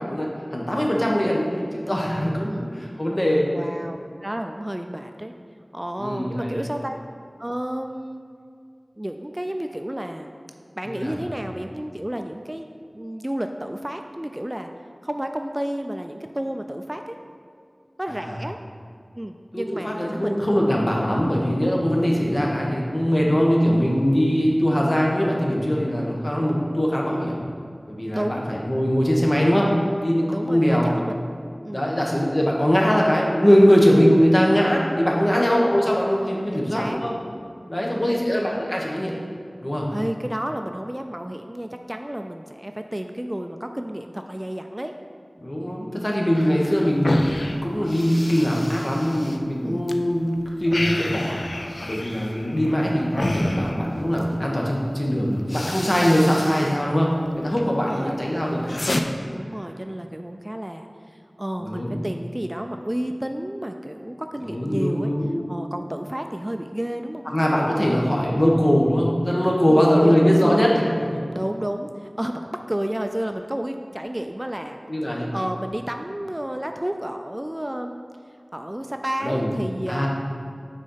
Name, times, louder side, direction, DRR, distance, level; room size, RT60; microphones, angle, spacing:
voice 1, 0.0-3.5 6.0-6.6 10.9-11.2 18.1-18.3 19.5-27.4 27.9-29.7 30.0-30.9 31.7-37.1 37.7-39.1 39.6-39.9 45.4-47.2 47.4-50.3 50.6-51.4 51.9-59.0 61.6-62.0 64.4-65.4 67.3-70.7 71.1-71.2 74.9-75.3 79.2-79.5 79.9-80.1, equal, 40° left, -2 dB, 1.2 m, -21 dB
voice 2, 2.0-2.7 3.5-5.3 5.7-7.0 7.4-8.2 9.0-10.3 10.8-12.7 12.9-14.7 15.0-17.2 18.0-18.6 19.2-20.5 28.1-28.4 30.3-31.2 31.6-31.9 36.5-37.0 37.7-38.3 39.9-44.9 49.6-49.9 57.6-58.2 59.3-65.1 65.5-67.2 67.8-68.0 69.7-70.7 71.3-78.0 78.5-80.1, right 1 dB, 20° right, 5 dB, 0.3 m, -31 dB
sound 1, 46.3-50.0 50.3-54.3 55.0-55.1 55.4-56.8 57.1-57.7 58.1-59.0, left 1 dB, 75° left, 0.4 m, -30 dB
6.4 x 4.2 x 5.6 m, 2.2 s
wide cardioid pair, 45°, 0 cm